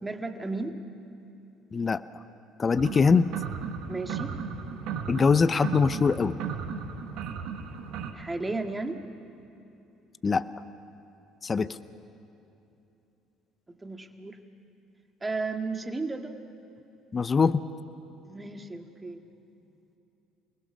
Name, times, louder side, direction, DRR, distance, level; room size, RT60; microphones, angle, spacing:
voice 1, 0.0-0.8 3.9-4.3 8.1-9.0 13.7-14.4 15.2-16.3 18.3-19.2, right 3 dB, 20° right, 5 dB, 2.0 m, -34 dB
voice 2, 2.6-3.3 5.1-6.4 10.2-10.4 11.4-11.7 17.1-17.6, left 5 dB, 35° left, 14 dB, 0.8 m, -22 dB
sound 1, 2.8-8.1, right 6 dB, 65° right, 1.8 m, -35 dB
29.5 x 20.5 x 6.4 m, 2.9 s
hypercardioid pair, 60°, 0 cm